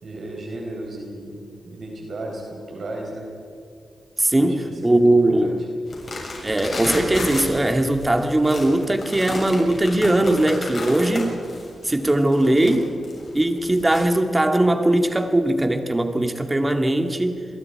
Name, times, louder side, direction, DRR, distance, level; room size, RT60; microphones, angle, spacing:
voice 1, 0.0-3.3 4.5-5.5, right 1 dB, 65° right, 0 dB, 4.6 m, -35 dB
voice 2, 4.2-5.7 6.4-11.4 11.8-12.9 13.3-17.4, right 1 dB, 20° right, 5 dB, 2.1 m, -20 dB
sound 1, 5.9-14.0, left 2 dB, 50° left, 7.5 m, -32 dB
28.0 x 22.0 x 4.8 m, 2.3 s
cardioid pair, 85°, 0 cm